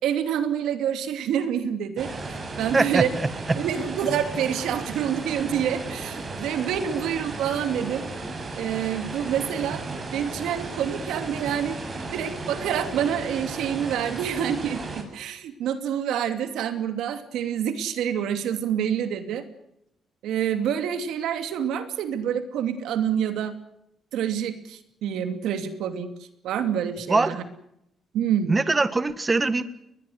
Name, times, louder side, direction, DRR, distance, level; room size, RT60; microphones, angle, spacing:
voice 1, 0.0-3.1 3.6-8.1 8.6-9.8 10.1-11.8 12.1-19.4 20.2-23.5 24.1-26.1 26.4-27.4 28.1-28.6, right 9 dB, 85° right, 8 dB, 2.7 m, -27 dB
sound 1, 2.0-15.0, right 3 dB, 40° right, 7.2 m, -35 dB
voice 2, 2.7-3.3 27.1-27.4 28.5-29.6, right 3 dB, 25° right, 12 dB, 1.5 m, -22 dB
21.5 x 21.0 x 8.0 m, 0.80 s
cardioid pair, 90°, 0 cm